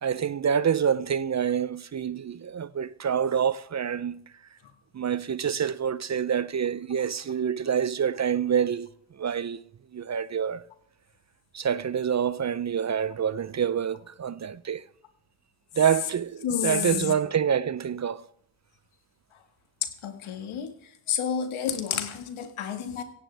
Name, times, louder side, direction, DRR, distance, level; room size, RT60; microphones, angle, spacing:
voice 1, 0.0-4.2 4.9-8.9 9.2-9.6 9.9-10.6 11.5-14.8 15.8-18.2, right 8 dB, 35° right, 0.6 m, -27 dB
voice 2, 16.4-17.1 19.8-20.8 21.1-23.0, left 8 dB, 75° left, 1.9 m, -30 dB
16.0 x 16.0 x 3.4 m
supercardioid pair, 50°, 49 cm